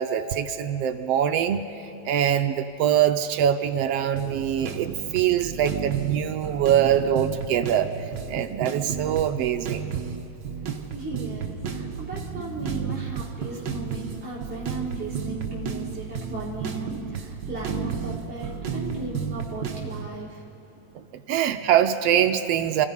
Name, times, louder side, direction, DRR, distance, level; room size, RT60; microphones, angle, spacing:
voice 1, 0.0-1.6 2.0-9.9 21.3-22.9, right 10 dB, 75° right, 7 dB, 1.5 m, -23 dB
sound 1, 4.2-20.1, right 6 dB, 55° right, 1.3 m, -32 dB
voice 2, 10.9-20.4, right 2 dB, 5° right, -8 dB, 3.6 m, -36 dB
29.5 x 16.0 x 5.5 m, 3.0 s
omnidirectional pair, 3.3 m